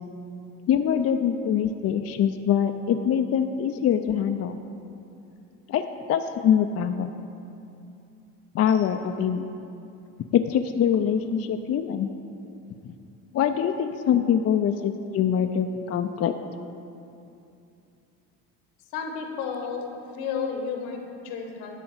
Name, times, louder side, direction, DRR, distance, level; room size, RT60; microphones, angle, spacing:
voice 1, 0.7-4.6 5.7-5.8 6.1-7.1 8.5-9.5 10.3-12.1 12.8-12.9 13.3-16.3, left 8 dB, 40° left, 7 dB, 0.5 m, -24 dB
voice 2, 18.9-19.9 20.1-21.8, left 6 dB, 75° left, 3 dB, 1.3 m, -32 dB
10.5 x 3.9 x 7.1 m, 2.7 s
supercardioid pair, 75°, 40 cm